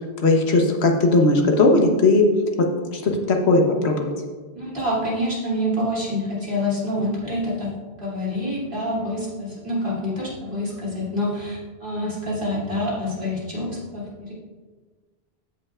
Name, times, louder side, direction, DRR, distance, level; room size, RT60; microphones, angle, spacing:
voice 1, 0.2-2.3 2.9-4.1, left 2 dB, 80° left, 2 dB, 1.3 m, -18 dB
voice 2, 4.5-14.3, left 1 dB, 55° right, -7 dB, 3.1 m, -27 dB
15.0 x 5.6 x 2.4 m, 1.4 s
omnidirectional pair, 1.1 m